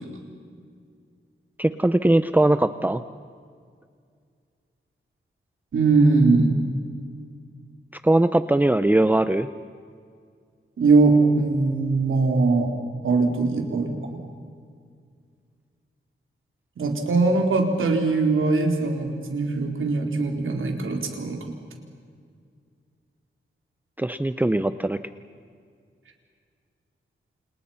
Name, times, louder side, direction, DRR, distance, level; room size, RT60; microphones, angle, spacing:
voice 1, 1.6-3.0 7.9-9.5 24.0-25.0, right 1 dB, 10° right, 11 dB, 0.6 m, -20 dB
voice 2, 5.7-6.5 10.8-12.7 13.0-14.2 16.8-21.4, right 3 dB, 90° right, 3 dB, 4.1 m, -21 dB
29.0 x 29.0 x 5.8 m, 2.2 s
wide cardioid pair, 160°, 20 cm